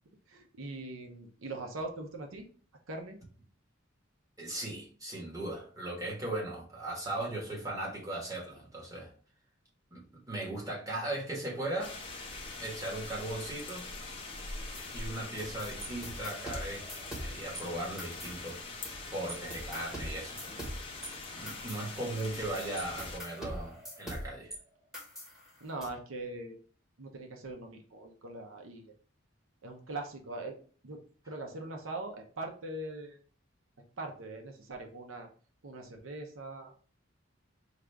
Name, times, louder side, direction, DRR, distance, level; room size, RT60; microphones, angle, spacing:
voice 1, 0.3-2.5 2.9-3.2 25.6-26.5 27.0-28.9 29.6-30.6 30.8-31.0 31.3-33.2 34.0-35.3 35.6-36.8, right 2 dB, 80° right, 3 dB, 0.7 m, -41 dB
voice 2, 4.4-9.1 9.9-10.0 10.3-11.9 12.6-13.9 14.9-16.9 17.2-18.6 19.1-20.6 21.3-24.5, right 1 dB, 20° right, -3 dB, 1.3 m, -38 dB
sound 1, 11.8-23.2, left 3 dB, 25° left, 0.8 m, -43 dB
sound 2, 14.7-17.6 18.0-19.0 19.3-24.6 24.9-25.9, equal, ahead, 1.2 m, -43 dB
4.9 x 2.4 x 3.3 m, 0.42 s
head